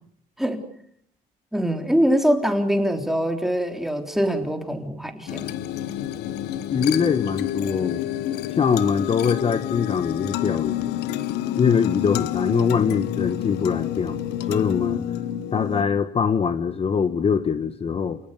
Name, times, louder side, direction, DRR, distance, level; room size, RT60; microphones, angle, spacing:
voice 1, 1.5-5.6, equal, ahead, 5 dB, 3.5 m, -23 dB
sound 1, 5.3-15.8, left 12 dB, 85° left, 1.4 m, -28 dB
voice 2, 6.7-8.1 8.5-10.9 11.5-15.0 15.5-18.2, left 6 dB, 35° left, 11 dB, 1.3 m, -23 dB
28.5 x 18.5 x 6.7 m, 0.65 s
cardioid pair, 110°, 17 cm